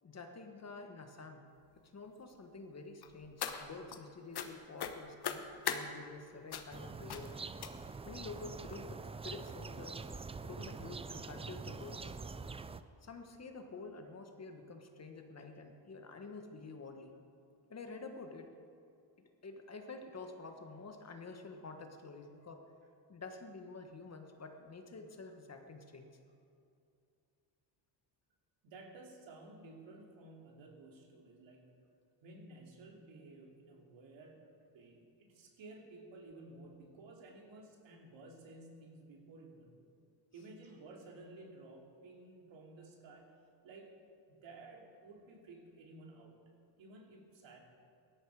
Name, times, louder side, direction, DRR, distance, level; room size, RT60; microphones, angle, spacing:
voice 1, 0.0-1.5 1.9-7.4 8.0-10.0 10.4-12.1 13.0-17.2 17.7-18.5 19.4-22.6 23.1-26.1, left 3 dB, 35° left, 5 dB, 1.5 m, -49 dB
sound 1, 3.0-4.0 4.3-4.5 4.8-5.8 6.5-6.8 7.1-7.3 7.6-8.0 8.7-8.8 9.2-9.4 9.6-9.7, left 8 dB, 55° left, 1.2 m, -39 dB
sound 2, 6.7-12.8, right 4 dB, 15° right, 0.4 m, -45 dB
voice 2, 28.6-31.7 32.2-39.9 40.3-43.9 44.3-46.4 46.8-47.6, right 2 dB, 70° right, 0 dB, 3.0 m, -54 dB
17.0 x 12.5 x 4.9 m, 2.5 s
cardioid pair, 105°, 47 cm